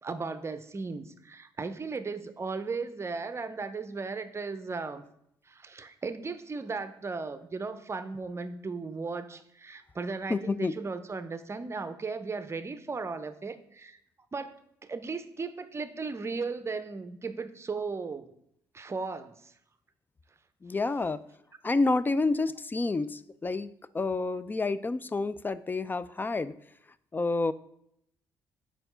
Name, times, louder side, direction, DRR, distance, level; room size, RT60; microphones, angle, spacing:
voice 1, 0.0-5.0 5.5-14.0 14.3-14.6 14.8-18.3 18.7-19.5, right 4 dB, 30° right, 11 dB, 0.6 m, -36 dB
voice 2, 10.3-10.8 20.6-21.2 21.6-26.5 27.1-27.5, left 3 dB, 20° left, 16 dB, 0.3 m, -29 dB
4.5 x 4.3 x 5.6 m, 0.74 s
supercardioid pair, 60°, 9 cm